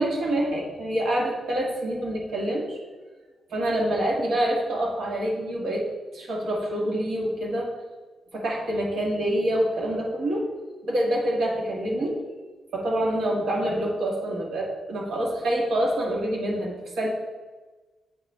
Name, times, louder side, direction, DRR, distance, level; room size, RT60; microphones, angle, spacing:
voice 1, 0.0-2.8 3.5-5.8 6.1-7.7 8.3-10.4 10.9-12.2 12.7-17.1, right 1 dB, 60° right, -2 dB, 1.5 m, -26 dB
8.6 x 4.0 x 3.3 m, 1.3 s
wide cardioid pair, 165°, 0 cm